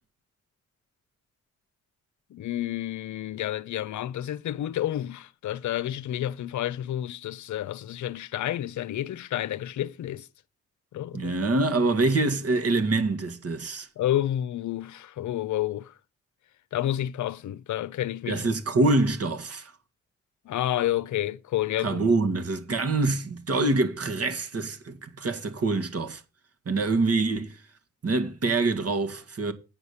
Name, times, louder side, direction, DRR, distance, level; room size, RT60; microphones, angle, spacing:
voice 1, 2.3-10.3 10.9-11.3 14.0-15.9 16.7-18.5 20.5-22.1, left 12 dB, 75° left, 0.7 m, -30 dB
voice 2, 11.1-13.9 18.3-19.7 21.8-26.2 26.7-27.6 28.0-29.5, right 3 dB, 55° right, 1.8 m, -25 dB
8.8 x 5.4 x 6.5 m
supercardioid pair, 45°, 30 cm